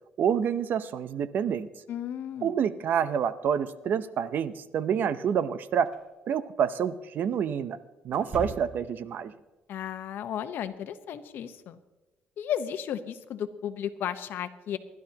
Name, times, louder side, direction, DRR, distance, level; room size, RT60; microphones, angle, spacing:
voice 1, 0.2-1.7 2.4-5.9 6.3-7.8 8.0-9.3, right 8 dB, 60° right, 14 dB, 0.7 m, -28 dB
voice 2, 1.9-2.5 9.7-11.8 12.4-14.8, left 9 dB, 70° left, 10 dB, 1.0 m, -34 dB
sound 1, 5.9-6.0 8.1-9.1, right 2 dB, 30° right, 3.0 m, -40 dB
27.0 x 12.0 x 2.9 m, 1.1 s
cardioid pair, 135°, 4 cm